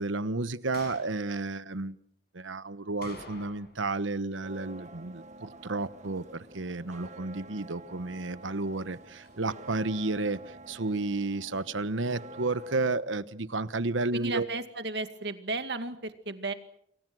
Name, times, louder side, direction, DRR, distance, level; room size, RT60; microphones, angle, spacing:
voice 1, 0.0-2.0 2.3-14.5, right 3 dB, 90° right, 14 dB, 1.2 m, -32 dB
sound 1, 0.7-1.2 3.0-3.9 4.1-4.2 9.2-9.4, left 3 dB, 55° left, 6.3 m, -47 dB
sound 2, 4.4-12.9, right 2 dB, 40° right, 1.8 m, -49 dB
voice 2, 14.1-16.5, right 3 dB, 60° right, 8 dB, 2.3 m, -34 dB
29.0 x 23.5 x 6.3 m, 0.71 s
head